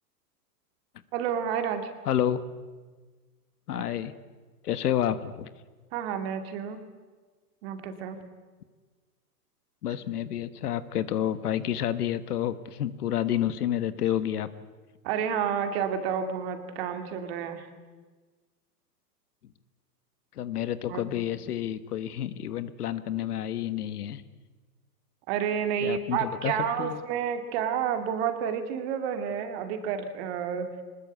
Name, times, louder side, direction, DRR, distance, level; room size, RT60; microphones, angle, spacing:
voice 1, 1.1-1.9 3.7-3.8 5.9-6.8 7.6-8.2 15.0-17.7 20.9-21.1 25.3-30.7, right 8 dB, 35° right, 8 dB, 2.6 m, -30 dB
voice 2, 2.1-2.4 3.7-4.1 4.6-5.5 9.8-14.5 20.4-24.2 25.8-26.5 26.8-27.0, left 11 dB, 65° left, 14 dB, 1.5 m, -29 dB
24.0 x 20.5 x 8.3 m, 1.4 s
hypercardioid pair, 150°, 49 cm